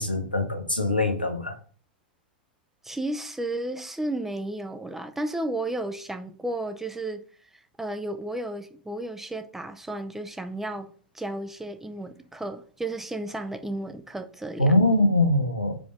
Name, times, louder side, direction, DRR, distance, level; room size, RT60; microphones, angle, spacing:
voice 1, 0.0-1.6 14.6-15.8, left 2 dB, 90° left, 1.0 m, -23 dB
voice 2, 2.8-7.2 7.8-14.8, right 1 dB, 5° right, 0.5 m, -33 dB
4.9 x 4.0 x 4.9 m
figure-of-eight pair, 90°, 5 cm